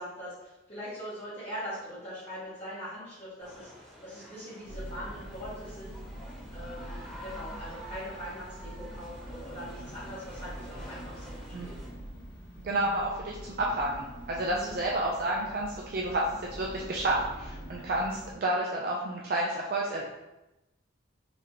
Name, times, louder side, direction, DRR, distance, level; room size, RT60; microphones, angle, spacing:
voice 1, 0.0-3.7 4.0-5.9 6.5-11.2 11.6-11.7 14.4-14.8, equal, 30° left, -11 dB, 1.2 m, -41 dB
sound 1, 3.4-11.9, equal, ahead, 1.3 m, -49 dB
sound 2, 4.6-18.3, right 1 dB, 80° left, 1.1 m, -44 dB
voice 2, 12.6-20.1, right 1 dB, 50° right, -2 dB, 0.4 m, -30 dB
3.9 x 2.8 x 3.2 m, 0.97 s
head